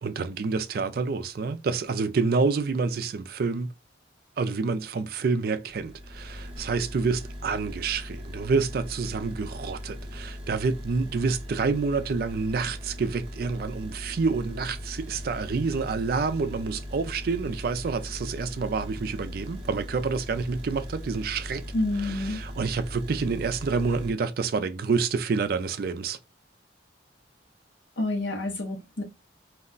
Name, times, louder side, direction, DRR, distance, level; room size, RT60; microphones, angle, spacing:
voice 1, 0.0-3.7 4.4-21.7 21.9-26.2, right 4 dB, 55° right, 0.4 m, -28 dB
sound 1, 5.7-24.1, equal, 30° right, 0.7 m, -39 dB
voice 2, 21.7-22.4 28.0-29.0, left 2 dB, 80° left, 0.8 m, -28 dB
2.3 x 2.1 x 3.7 m
head